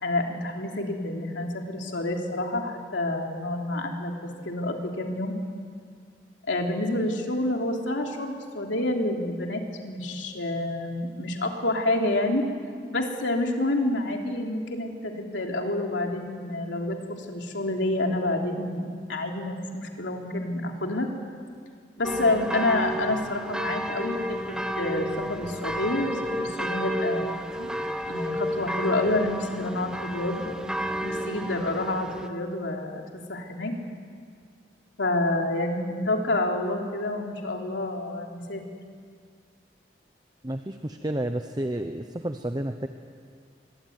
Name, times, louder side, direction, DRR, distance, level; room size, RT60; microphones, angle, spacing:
voice 1, 0.0-5.3 6.5-12.5 12.9-18.8 19.1-21.1 22.0-24.4 24.8-27.7 28.1-30.4 31.0-33.0 33.3-33.7 35.0-38.6, left 2 dB, 80° left, 2 dB, 3.3 m, -28 dB
sound 1, 22.0-32.3, equal, 5° right, 1.3 m, -31 dB
voice 2, 40.4-42.9, right 1 dB, 20° right, 7 dB, 0.9 m, -31 dB
25.0 x 23.0 x 9.5 m, 2.1 s
head